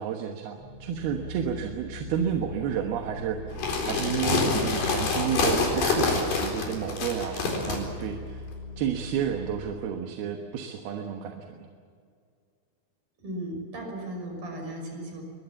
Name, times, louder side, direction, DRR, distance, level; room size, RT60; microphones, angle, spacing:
voice 1, 0.0-8.5 8.8-11.7, right 8 dB, 80° right, 4 dB, 3.3 m, -31 dB
sound 1, 0.6-9.7, left 2 dB, 40° right, 7.5 m, -41 dB
sound 2, 3.5-7.8, left 4 dB, 85° left, 6.1 m, -26 dB
voice 2, 13.2-15.2, right 1 dB, 65° right, 2 dB, 7.7 m, -36 dB
23.5 x 21.5 x 7.2 m, 2.2 s
omnidirectional pair, 4.4 m